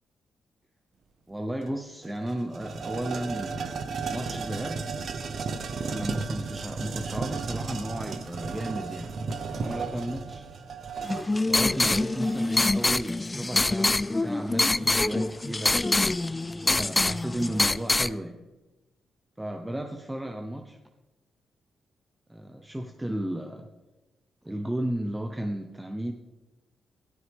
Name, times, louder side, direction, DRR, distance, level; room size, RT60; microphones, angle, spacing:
voice 1, 1.3-4.8 5.8-10.5 11.4-15.8 16.7-18.4 19.4-20.8 22.3-23.7 24.4-26.1, right 1 dB, 15° right, 4 dB, 1.0 m, -34 dB
sound 1, 1.6-1.7 2.0-12.7, right 4 dB, 60° right, 1.0 m, -34 dB
sound 2, 11.0-18.1, left 2 dB, 25° left, 0.3 m, -25 dB
14.0 x 13.0 x 3.6 m, 1.1 s
supercardioid pair, 55°, 0 cm